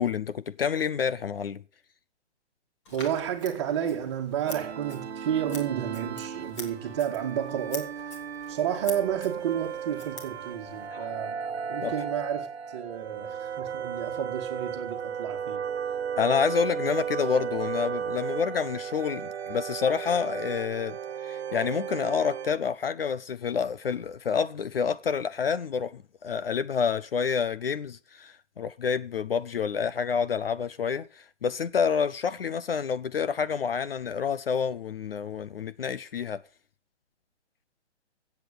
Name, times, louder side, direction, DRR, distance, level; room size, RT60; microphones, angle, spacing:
voice 1, 0.0-1.6 10.9-11.1 11.8-11.9 16.2-21.0 21.2-36.4, left 6 dB, 55° left, 0.7 m, -28 dB
Scissors, 2.9-10.9, left 2 dB, 25° left, 2.9 m, -46 dB
voice 2, 2.9-8.0 8.5-11.4 11.7-15.6, right 9 dB, 25° right, 1.9 m, -31 dB
sound 1, 4.5-22.6, right 7 dB, 65° right, 1.1 m, -35 dB
15.0 x 8.3 x 6.7 m
hypercardioid pair, 170°, 35 cm